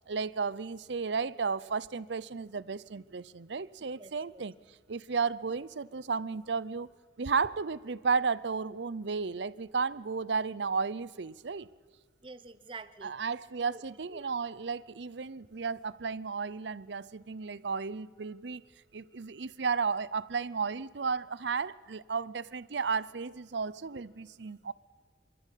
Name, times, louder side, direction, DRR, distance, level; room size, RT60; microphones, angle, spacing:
voice 1, 0.1-4.5 4.9-6.9 7.2-11.7 13.0-18.6 18.9-24.7, right 5 dB, 85° right, 0.7 m, -33 dB
voice 2, 4.0-4.4 12.2-13.1 13.7-13.8 14.1-14.3, right 3 dB, 30° right, 0.9 m, -47 dB
26.5 x 13.5 x 8.4 m
head